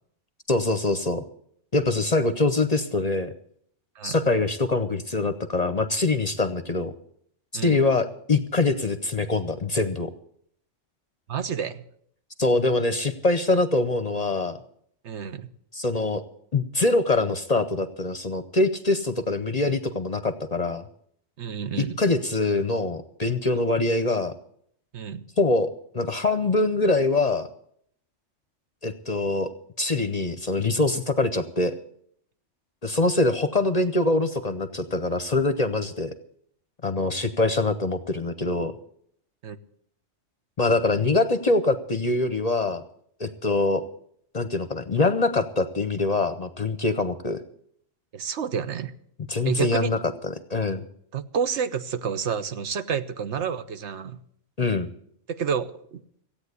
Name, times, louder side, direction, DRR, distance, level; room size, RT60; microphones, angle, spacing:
voice 1, 0.5-1.2 1.7-3.3 4.0-6.9 7.5-10.1 12.4-14.6 15.7-16.2 16.5-20.8 21.8-24.3 25.4-27.5 28.8-29.5 29.8-31.8 32.8-36.1 36.8-38.7 40.6-42.8 43.2-43.8 44.3-47.4 49.3-50.0 50.2-50.8 54.6-54.9, left 2 dB, 40° left, 11 dB, 0.7 m, -24 dB
voice 2, 11.3-11.8 15.0-15.5 21.4-21.9 24.9-25.2 39.4-39.6 48.1-48.9 49.4-49.9 51.1-54.2 55.3-56.0, right 7 dB, 70° right, 11 dB, 1.1 m, -29 dB
16.0 x 8.7 x 8.2 m, 0.67 s
omnidirectional pair, 1.3 m